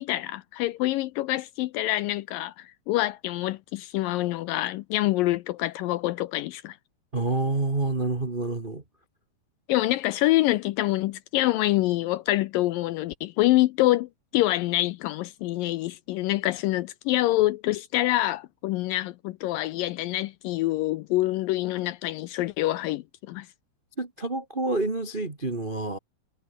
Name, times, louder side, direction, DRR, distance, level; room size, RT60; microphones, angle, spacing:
voice 1, 0.0-6.8 9.7-23.5, left 16 dB, 80° left, 2.1 m, -26 dB
voice 2, 7.1-8.8 24.0-26.0, right 2 dB, 50° right, 0.6 m, -28 dB
omnidirectional pair, 4.5 m